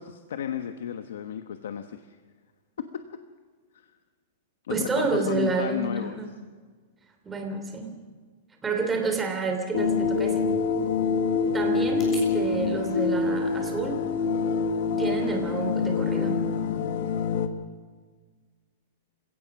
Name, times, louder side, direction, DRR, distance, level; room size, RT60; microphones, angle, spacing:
voice 1, 0.0-2.2 2.8-3.2 4.6-6.2, left 9 dB, 85° left, 8 dB, 1.2 m, -33 dB
voice 2, 4.7-6.3 7.2-7.9 8.6-10.4 11.5-14.0 14.9-16.4, right 4 dB, 10° right, 4 dB, 2.9 m, -29 dB
sound 1, 9.7-17.5, left 5 dB, 55° left, 1.5 m, -26 dB
sound 2, 9.7-12.3, left 2 dB, 20° left, 7.0 m, -51 dB
28.0 x 16.5 x 6.1 m, 1.5 s
supercardioid pair, 165°, 0 cm